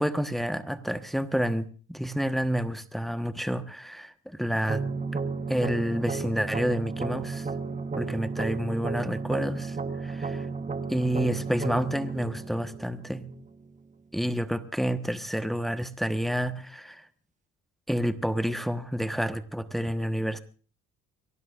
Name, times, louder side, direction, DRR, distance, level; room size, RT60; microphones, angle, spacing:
voice 1, 0.0-4.8 5.1-5.2 5.5-7.5 8.0-10.5 10.9-13.3 14.1-17.0 17.9-20.4, equal, ahead, 9 dB, 1.2 m, -29 dB
sound 1, 4.7-13.7, right 4 dB, 25° right, 1.2 m, -33 dB
23.0 x 17.5 x 2.5 m, 0.38 s
supercardioid pair, 70°, 30 cm